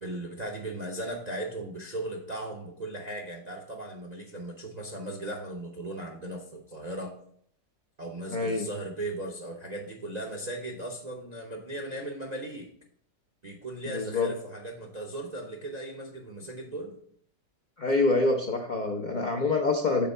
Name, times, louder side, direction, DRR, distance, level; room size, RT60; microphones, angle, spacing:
voice 1, 0.0-7.1 8.0-12.7 13.4-16.9, right 1 dB, 55° right, 1 dB, 0.4 m, -37 dB
voice 2, 8.3-8.7 13.9-14.3 17.8-20.1, left 3 dB, 85° left, 2 dB, 0.4 m, -26 dB
5.8 x 4.4 x 5.3 m, 0.64 s
omnidirectional pair, 1.9 m